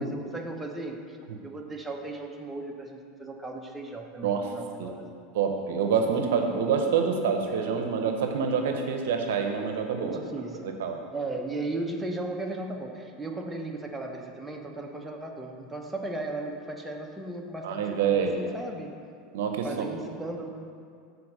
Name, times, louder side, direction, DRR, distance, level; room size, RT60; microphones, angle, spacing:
voice 1, 0.0-1.2 1.4-5.1 6.5-6.6 10.0-10.7 11.1-18.9 19.6-20.5, right 2 dB, 10° right, 1 dB, 0.8 m, -36 dB
voice 2, 4.2-4.5 4.8-4.9 5.3-10.2 10.6-11.0 17.6-18.4 19.3-19.7, right 6 dB, 75° right, 4 dB, 0.7 m, -27 dB
6.9 x 4.1 x 6.5 m, 2.3 s
hypercardioid pair, 95°, 0 cm